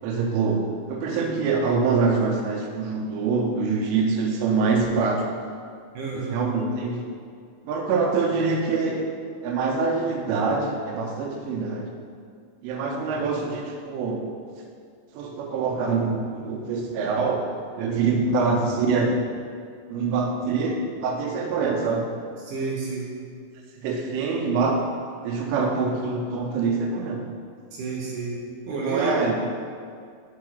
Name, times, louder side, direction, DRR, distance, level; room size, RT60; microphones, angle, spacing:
voice 1, 0.0-5.3 6.1-7.0 7.7-9.0 9.4-11.9 12.6-14.2 15.1-17.4 17.8-19.2 19.9-22.1 23.8-24.9 25.2-27.2 28.9-29.3, right 4 dB, 90° right, 1 dB, 3.4 m, -25 dB
voice 2, 5.9-6.4 17.9-18.2 22.4-23.1 27.7-28.4 28.7-29.1, right 4 dB, 70° right, -6 dB, 3.0 m, -30 dB
7.0 x 4.7 x 6.4 m, 2.2 s
omnidirectional pair, 5.5 m